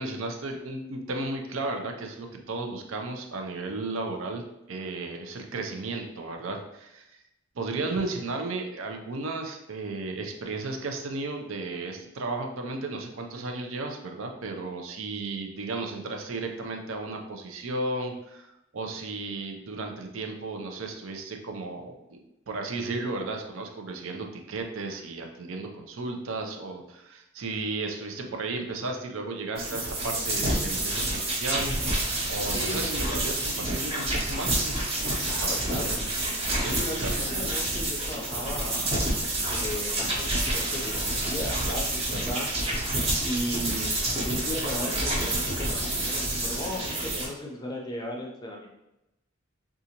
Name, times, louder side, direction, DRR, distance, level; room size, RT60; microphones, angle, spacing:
voice 1, 0.0-7.2 7.6-22.2 22.5-31.7 32.3-36.0 36.4-37.3, right 3 dB, 75° right, 3 dB, 0.5 m, -34 dB
sound 1, 29.6-47.3, right 1 dB, 30° right, 0.8 m, -28 dB
voice 2, 35.2-35.9 36.7-39.1 39.5-43.0 43.3-48.7, left 1 dB, 20° left, 0 dB, 0.5 m, -36 dB
3.8 x 2.4 x 2.8 m, 0.91 s
head